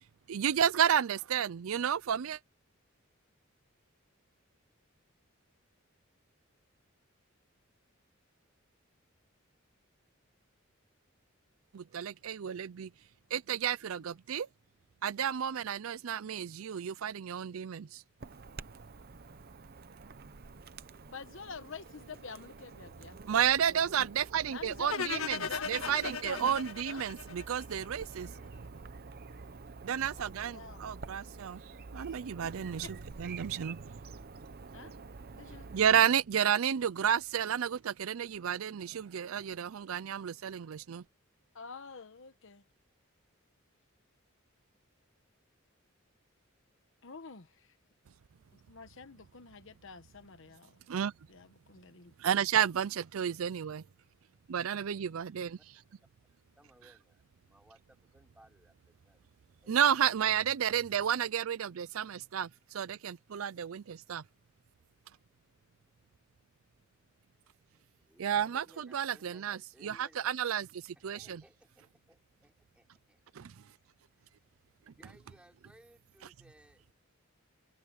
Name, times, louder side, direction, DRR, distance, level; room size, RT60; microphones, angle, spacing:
voice 1, 0.3-2.4 11.7-12.9 13.3-14.5 15.0-18.0 23.3-28.3 29.8-31.6 31.9-33.8 35.7-41.0 50.9-51.1 52.2-53.8 54.5-55.6 59.7-64.2 68.2-71.4 73.4-73.5, right 8 dB, 80° right, 0.4 m, -31 dB
Chirp tweet / Buzz, 18.2-36.0, right 4 dB, 45° right, 0.7 m, -48 dB
voice 2, 21.1-23.3 23.9-24.1 24.5-26.5 26.9-27.4 30.2-30.9 32.8-32.9 34.7-34.9 35.3-35.7 41.5-42.6 47.0-47.8 48.5-50.8 51.3-52.1, left 4 dB, 65° left, 1.1 m, -47 dB
sound 1, 24.9-28.0, left 5 dB, 85° left, 1.7 m, -37 dB
voice 3, 56.6-59.2 59.6-59.8 67.7-70.3 71.1-73.5 73.8-73.9 74.9-76.9, equal, 5° right, 5.8 m, -63 dB
head